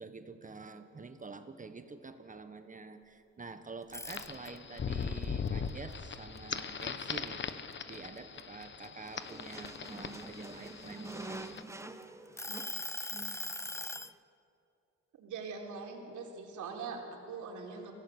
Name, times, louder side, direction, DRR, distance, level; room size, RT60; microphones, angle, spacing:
voice 1, 0.0-11.5, right 4 dB, 25° right, 9 dB, 1.4 m, -47 dB
sound 1, 3.8-4.8 5.2-7.0 7.5-7.7 8.2-10.0 10.7-11.8 12.4-14.1, left 2 dB, 10° left, 0.6 m, -40 dB
sound 2, 4.1-11.6, left 6 dB, 40° left, 1.1 m, -40 dB
sound 3, 9.0-14.2, right 2 dB, 10° right, 1.1 m, -47 dB
voice 2, 15.2-17.9, right 5 dB, 75° right, 1 dB, 3.9 m, -42 dB
23.5 x 17.0 x 8.2 m, 2.8 s
cardioid pair, 90°, 30 cm